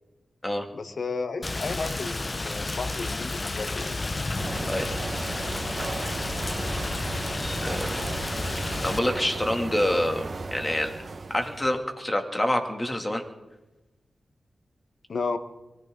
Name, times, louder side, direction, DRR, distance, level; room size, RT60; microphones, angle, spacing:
voice 1, 0.7-4.0 15.1-15.4, left 4 dB, 65° left, 10 dB, 1.4 m, -33 dB
Rain, 1.4-9.0, left 2 dB, 40° left, 0.8 m, -31 dB
sound 1, 4.4-11.8, right 3 dB, 55° right, 1.5 m, -35 dB
voice 2, 4.7-5.0 6.0-6.2 7.6-8.0 8.8-10.3 10.5-10.9 11.3-13.2, left 1 dB, 20° left, 4 dB, 2.8 m, -27 dB
23.5 x 15.0 x 4.0 m, 1.0 s
cardioid pair, 45°, 0 cm